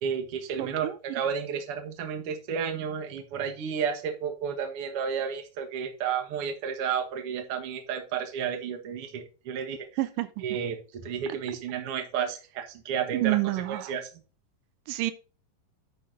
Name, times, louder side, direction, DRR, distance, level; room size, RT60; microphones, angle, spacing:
voice 1, 0.0-9.9 10.4-13.4 13.7-14.1, right 7 dB, 55° right, 2.0 m, -32 dB
voice 2, 0.6-1.2 10.0-10.3 13.1-13.9 14.9-15.1, right 18 dB, 90° right, 2.3 m, -29 dB
10.5 x 4.0 x 5.0 m
omnidirectional pair, 3.7 m